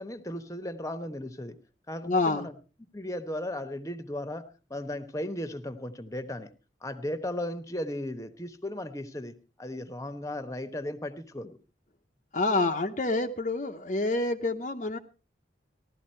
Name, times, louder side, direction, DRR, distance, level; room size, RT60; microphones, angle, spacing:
voice 1, 0.0-1.6 1.9-2.5 2.9-6.5 6.8-11.6, left 1 dB, 15° left, 11 dB, 1.0 m, -36 dB
voice 2, 2.1-2.5 12.3-15.0, left 2 dB, 40° left, 5 dB, 0.7 m, -27 dB
16.0 x 12.5 x 4.4 m, 0.35 s
head